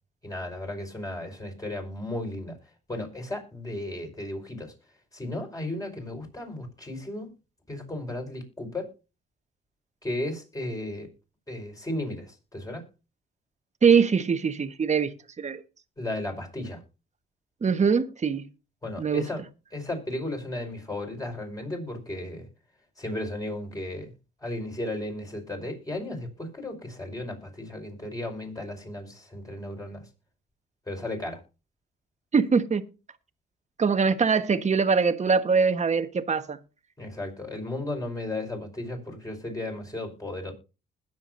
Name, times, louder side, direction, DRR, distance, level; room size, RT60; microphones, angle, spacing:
voice 1, 0.2-2.5 2.9-4.7 5.1-7.3 7.7-8.9 10.0-11.1 11.5-12.8 16.0-16.8 18.8-19.4 19.7-22.5 23.0-24.1 24.4-30.0 30.9-31.4 37.0-40.5, left 1 dB, 15° left, 5.3 m, -34 dB
voice 2, 13.8-15.6 17.6-18.5 19.0-19.2 32.3-32.8 33.8-36.6, right 5 dB, 35° right, 1.5 m, -23 dB
20.5 x 7.3 x 2.7 m
cardioid pair, 90°, 20 cm